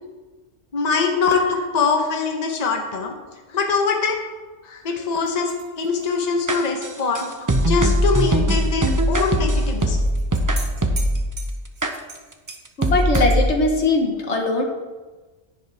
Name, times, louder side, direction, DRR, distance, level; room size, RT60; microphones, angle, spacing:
voice 1, 0.7-3.2 3.5-4.2 4.6-7.3 7.7-10.0, left 5 dB, 35° left, 3 dB, 1.1 m, -23 dB
sound 1, 5.3-8.0 8.3-8.4 9.8-13.4, right 3 dB, 50° right, 1.7 m, -41 dB
sound 2, 6.5-11.3 11.8-11.9 12.5-12.6 12.8-13.5, right 1 dB, 20° right, 0.6 m, -20 dB
voice 2, 12.8-14.6, left 2 dB, 70° left, 2 dB, 1.6 m, -20 dB
10.5 x 10.0 x 3.5 m, 1.3 s
omnidirectional pair, 1.2 m